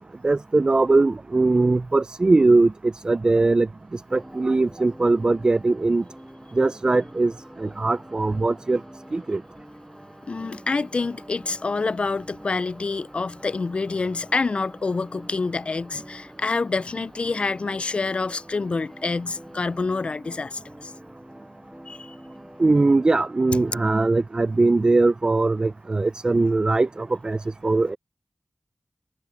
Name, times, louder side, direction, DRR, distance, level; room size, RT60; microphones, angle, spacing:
voice 1, 0.0-6.0 6.5-7.3 7.6-8.8 9.1-9.4 22.6-28.0, right 3 dB, 40° right, 0.3 m, -21 dB
sound 1, 3.8-20.0, left 1 dB, 20° left, 4.7 m, -56 dB
sound 2, 4.1-23.9, equal, 5° right, 1.9 m, -46 dB
voice 2, 10.3-20.9 21.9-22.2 23.5-23.6, left 4 dB, 60° left, 0.4 m, -27 dB
wide cardioid pair, 60°, 2 cm